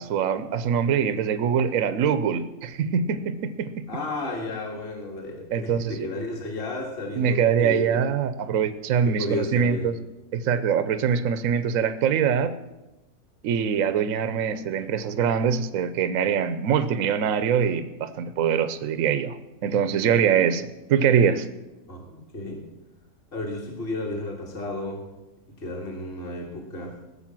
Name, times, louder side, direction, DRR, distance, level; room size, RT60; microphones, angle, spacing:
voice 1, 0.0-3.8 5.5-6.1 7.2-10.0 10.3-12.6 13.4-21.5, right 7 dB, 60° right, 12 dB, 1.0 m, -23 dB
voice 2, 3.9-8.0 9.1-9.9 21.9-22.7 23.3-25.1 25.6-27.0, left 2 dB, 35° left, 1 dB, 1.9 m, -33 dB
16.0 x 6.8 x 7.5 m, 1.0 s
omnidirectional pair, 1.8 m